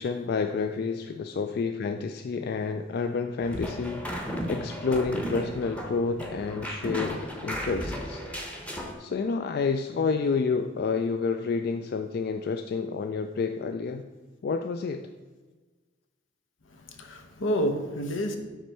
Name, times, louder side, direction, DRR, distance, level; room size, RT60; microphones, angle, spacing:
voice 1, 0.0-4.0 4.5-8.2 9.0-14.1 14.4-15.1, left 4 dB, 55° left, 7 dB, 0.3 m, -29 dB
sound 1, 3.4-8.9, equal, 5° left, 0.8 m, -34 dB
voice 2, 16.7-18.4, equal, 85° left, 6 dB, 0.9 m, -29 dB
5.9 x 4.4 x 5.5 m, 1.3 s
head